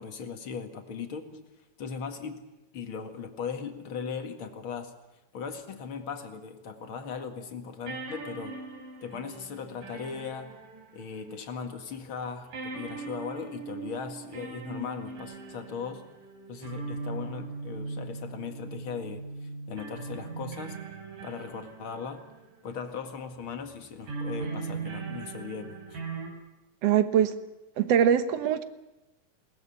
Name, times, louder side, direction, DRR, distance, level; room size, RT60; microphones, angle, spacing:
voice 1, 0.0-1.5 1.8-2.4 2.7-5.0 5.3-8.6 9.0-10.5 10.9-16.1 16.5-19.2 19.7-20.8 21.2-22.3 22.6-26.0, left 6 dB, 45° left, 6 dB, 2.5 m, -38 dB
sound 1, 7.0-7.1 7.9-11.7 11.9-12.0 12.5-23.0 24.0-26.3, right 4 dB, 80° right, 5.0 m, -40 dB
voice 2, 26.8-27.4 27.8-28.6, right 9 dB, 60° right, 11 dB, 2.0 m, -22 dB
21.5 x 19.0 x 9.9 m, 1.0 s
omnidirectional pair, 3.7 m